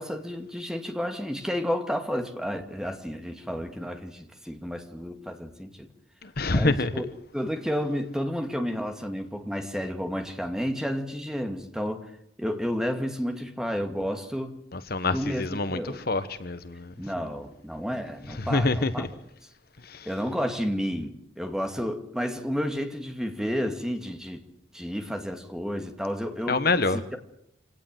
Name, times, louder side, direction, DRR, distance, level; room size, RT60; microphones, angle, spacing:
voice 1, 0.0-5.9 6.5-7.1 7.3-12.0 12.4-14.6 15.1-16.0 17.0-19.1 20.0-24.4 24.7-26.6, equal, 5° right, 2.2 m, -31 dB
voice 2, 6.2-6.9 14.7-16.9 18.3-19.1 19.8-20.1 26.5-27.0, left 3 dB, 50° left, 1.2 m, -26 dB
26.0 x 18.0 x 7.8 m
head